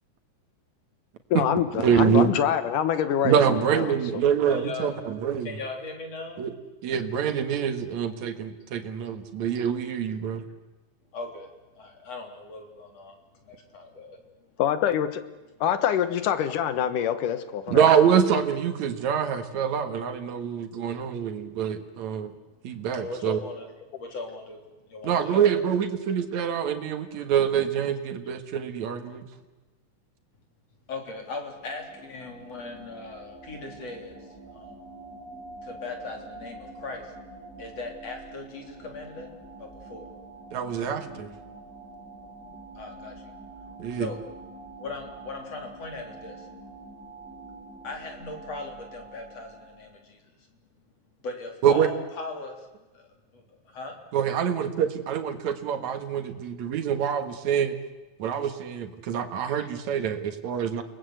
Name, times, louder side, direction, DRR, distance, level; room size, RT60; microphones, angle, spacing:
voice 1, 1.3-3.9 14.6-15.2 15.6-17.9, left 9 dB, 70° left, 11 dB, 2.7 m, -25 dB
voice 2, 1.8-2.3 3.2-5.5 6.4-6.5 6.8-10.4 17.7-22.3 22.6-23.4 25.0-29.2 40.5-41.3 43.8-44.1 51.6-51.9 54.1-57.8 58.2-60.8, right 8 dB, 60° right, 8 dB, 2.8 m, -25 dB
voice 3, 4.5-4.9 5.5-6.4 11.1-11.5 11.8-14.2 20.7-20.8 22.3-23.7 24.0-24.6 24.9-25.6 30.9-34.2 34.5-34.8 35.6-37.1 37.6-39.3 39.6-40.1 42.8-43.3 43.9-44.2 44.8-46.5 47.8-50.2 51.2-52.7 52.9-54.0 59.5-59.7, left 3 dB, 45° left, 3 dB, 4.5 m, -39 dB
sound 1, 31.1-50.0, right 2 dB, 20° right, 4.1 m, -46 dB
29.5 x 20.5 x 8.1 m, 1.2 s
omnidirectional pair, 3.9 m